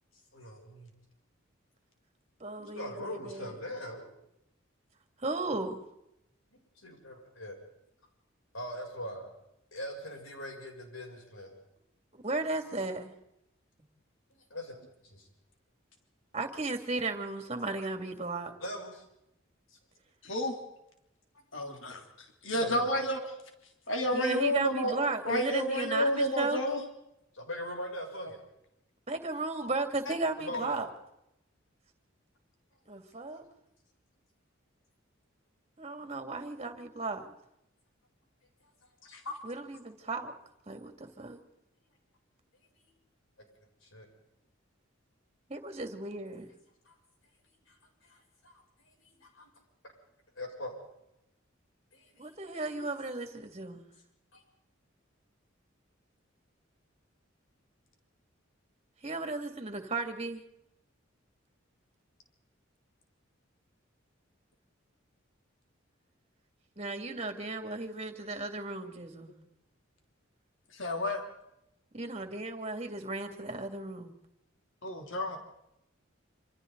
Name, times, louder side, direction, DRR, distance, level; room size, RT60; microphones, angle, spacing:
voice 1, 0.3-0.9 2.6-4.1 6.8-7.6 8.5-9.3 9.7-11.5 14.5-14.7 15.0-15.3 18.6-19.0 21.5-21.8 22.5-22.9 27.3-28.4 30.4-30.8 42.7-42.8 43.8-44.1 46.9-47.0 47.7-47.8 48.0-48.6 48.9-49.5 50.4-50.7 51.9-52.3 54.3-54.4, left 1 dB, 90° left, 0 dB, 7.7 m, -41 dB
voice 2, 2.4-3.6 5.2-5.8 12.2-13.1 16.3-18.5 24.1-26.6 29.1-30.9 32.9-33.4 35.8-37.3 39.4-40.3 40.7-41.4 45.5-46.5 52.2-53.9 59.0-60.4 66.8-69.3 71.9-74.1, right 3 dB, 30° right, 5 dB, 2.6 m, -35 dB
voice 3, 20.2-20.5 21.5-22.0 22.4-23.2 23.9-24.9 25.2-26.9 39.1-39.3 70.7-71.2 74.8-75.4, left 1 dB, 75° left, 3 dB, 3.3 m, -30 dB
27.5 x 26.5 x 4.1 m, 0.83 s
head